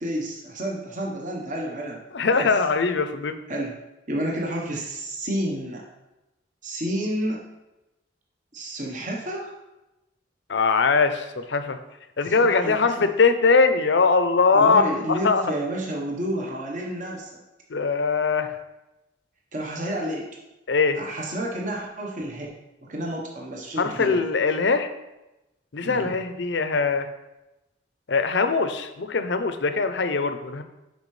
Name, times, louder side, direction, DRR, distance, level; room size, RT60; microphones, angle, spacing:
voice 1, 0.0-2.0 2.3-2.5 3.5-3.8 4.1-5.8 6.6-7.4 8.5-9.5 12.2-13.1 14.5-17.4 19.5-20.3 20.9-22.5 22.8-24.2 25.8-26.2, right 1 dB, 45° right, -1 dB, 1.0 m, -30 dB
voice 2, 2.1-3.4 10.5-11.8 12.2-14.8 15.1-15.4 17.7-18.6 20.7-21.0 23.8-24.9 25.7-27.1 28.1-30.6, left 4 dB, 70° left, 9 dB, 0.6 m, -21 dB
10.5 x 4.6 x 3.2 m, 0.98 s
head